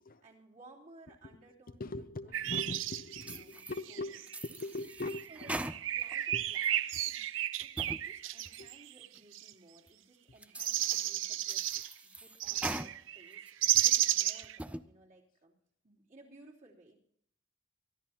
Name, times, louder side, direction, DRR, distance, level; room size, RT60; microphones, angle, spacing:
voice 1, 0.2-2.9 3.4-4.2 5.3-7.3 7.6-11.6 12.0-15.5 15.8-17.0, right 2 dB, 45° right, 3.3 m, -59 dB
voice 2, 1.7-4.3 4.6-5.6 6.3-6.5 8.6-8.7, left 2 dB, 50° left, 0.7 m, -41 dB
sound 1, 2.3-4.4 4.9-9.5 10.6-11.9 12.4-14.6, right 13 dB, 75° right, 0.5 m, -33 dB
sound 2, 3.2-3.8 4.3-6.2 6.5-7.2 7.6-8.0 8.5-8.6 9.2-9.3 9.9-10.0 10.4-11.1 11.5-12.9 13.3-14.0 14.4-14.8, right 1 dB, 5° right, 0.4 m, -42 dB
24.0 x 13.0 x 2.9 m
head